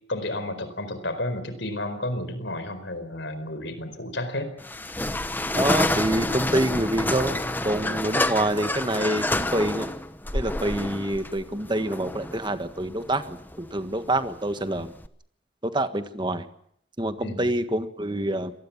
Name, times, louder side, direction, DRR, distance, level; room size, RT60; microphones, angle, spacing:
voice 1, 0.1-4.5 17.2-17.5, left 1 dB, 65° left, 11 dB, 4.5 m, -31 dB
sound 1, 4.6-15.1, left 1 dB, 10° left, 1.0 m, -29 dB
voice 2, 5.5-7.4 7.6-9.9 10.3-14.9 15.6-16.4 17.0-18.6, right 1 dB, 25° right, 10 dB, 1.5 m, -26 dB
26.5 x 19.5 x 7.3 m, 0.70 s
head